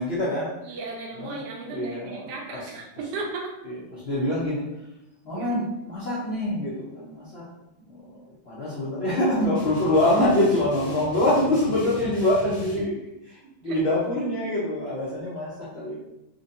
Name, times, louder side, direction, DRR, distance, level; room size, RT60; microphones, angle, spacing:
voice 1, 0.0-0.5 1.1-2.7 3.6-4.7 5.2-7.4 7.9-12.9 13.2-16.0, left 1 dB, 60° left, -10 dB, 0.6 m, -25 dB
voice 2, 0.6-3.5 5.3-5.5 12.8-13.0 13.4-13.8, right 3 dB, 65° right, -1 dB, 1.1 m, -35 dB
sound 1, 9.5-12.8, right 1 dB, 30° left, 0.9 m, -40 dB
4.3 x 2.7 x 2.7 m, 0.90 s
omnidirectional pair, 2.3 m